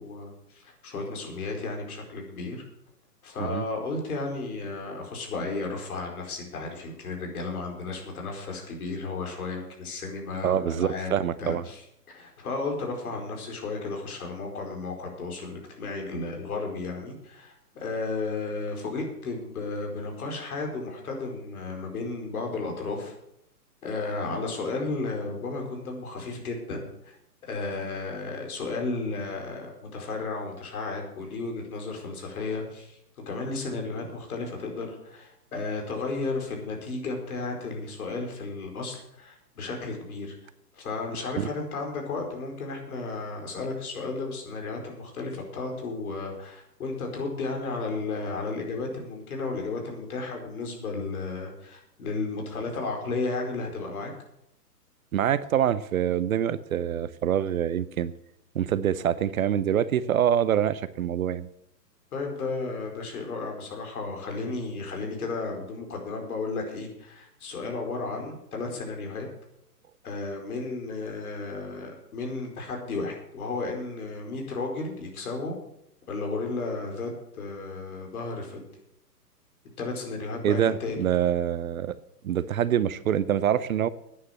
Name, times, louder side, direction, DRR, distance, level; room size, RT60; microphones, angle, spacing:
voice 1, 0.0-2.6 3.2-11.1 11.4-11.8 12.1-23.1 23.8-27.1 27.5-40.3 40.7-54.1 62.1-69.3 70.0-75.5 76.1-78.7 79.8-81.0, left 3 dB, 60° left, 1 dB, 4.9 m, -33 dB
voice 2, 10.4-11.6 41.4-41.5 55.1-58.1 58.5-61.5 80.4-81.9 82.2-83.9, right 10 dB, 60° right, 16 dB, 0.8 m, -25 dB
11.0 x 9.5 x 7.5 m, 0.80 s
hypercardioid pair, 150°, 48 cm